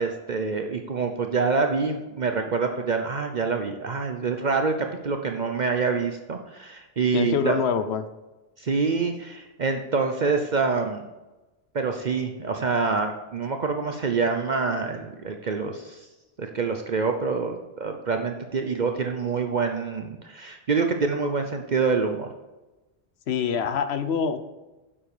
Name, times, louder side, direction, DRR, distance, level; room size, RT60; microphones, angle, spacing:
voice 1, 0.0-7.6 8.6-11.1 11.7-16.0 16.4-22.3, right 4 dB, 50° right, 5 dB, 0.8 m, -26 dB
voice 2, 7.1-8.0 23.3-24.4, left 6 dB, 85° left, 11 dB, 1.0 m, -25 dB
10.5 x 7.4 x 4.9 m, 1.1 s
omnidirectional pair, 1.0 m